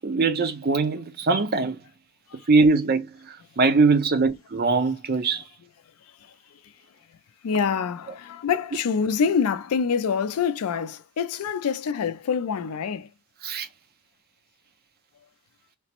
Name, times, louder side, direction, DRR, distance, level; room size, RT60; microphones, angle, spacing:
voice 1, 0.0-1.8 2.5-5.4 13.4-13.7, right 4 dB, 45° right, 0.5 m, -22 dB
voice 2, 7.4-13.1, left 6 dB, 75° left, 0.4 m, -25 dB
3.3 x 2.0 x 2.9 m
head